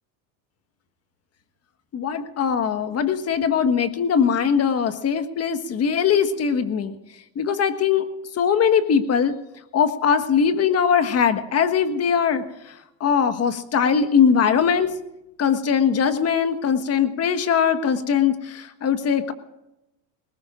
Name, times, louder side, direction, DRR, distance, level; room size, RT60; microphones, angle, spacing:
voice 1, 1.9-6.9 7.3-8.1 8.3-9.4 9.7-12.7 13.0-14.9 15.4-19.3, left 7 dB, 35° left, 9 dB, 1.5 m, -21 dB
21.5 x 19.5 x 2.5 m, 0.91 s
supercardioid pair, 115°, 43 cm